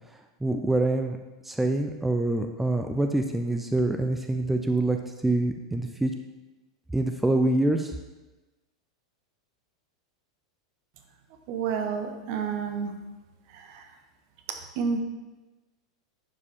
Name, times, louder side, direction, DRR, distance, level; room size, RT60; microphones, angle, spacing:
voice 1, 0.4-1.2 1.4-6.1 6.9-7.9, right 2 dB, 5° right, 5 dB, 0.5 m, -25 dB
voice 2, 11.5-12.9 14.8-15.0, right 6 dB, 55° right, 5 dB, 1.0 m, -29 dB
11.0 x 4.9 x 3.6 m, 1.1 s
hypercardioid pair, 95°, 3 cm